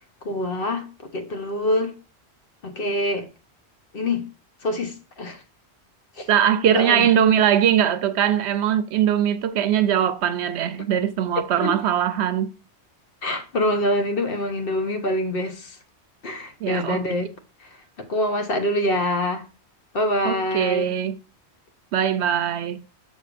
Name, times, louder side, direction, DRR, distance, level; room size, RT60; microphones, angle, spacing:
voice 1, 0.2-0.9 1.1-1.9 2.6-3.3 3.9-4.3 4.6-5.4 6.2-6.3 6.6-7.1 11.6-11.8 13.2-15.8 16.2-17.3 17.6-17.7 18.1-19.4 19.9-20.9, left 1 dB, 60° left, 1.2 m, -25 dB
voice 2, 6.3-12.5 16.6-17.0 20.2-21.2 21.9-22.8, right 9 dB, 80° right, 0.8 m, -21 dB
6.5 x 6.4 x 2.5 m
omnidirectional pair, 1.1 m